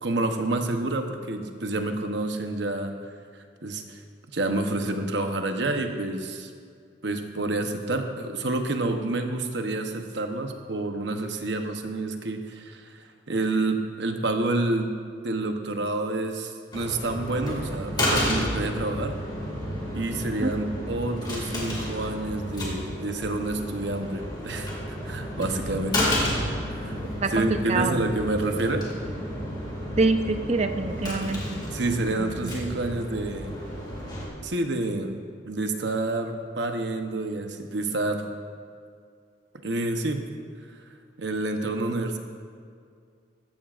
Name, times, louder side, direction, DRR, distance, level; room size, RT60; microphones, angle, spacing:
voice 1, 0.0-4.0 4.3-6.5 7.0-13.0 13.3-15.0 15.2-19.2 19.9-26.3 26.7-27.0 27.3-28.9 31.7-33.5 34.4-38.3 39.6-40.2 41.2-42.2, right 2 dB, 65° right, 5 dB, 0.9 m, -28 dB
sound 1, 16.7-34.3, left 1 dB, 20° left, 2.2 m, -31 dB
voice 2, 27.2-28.1 30.0-31.6 32.2-32.5, right 3 dB, 35° right, 8 dB, 0.5 m, -26 dB
14.5 x 14.0 x 2.5 m, 2.2 s
head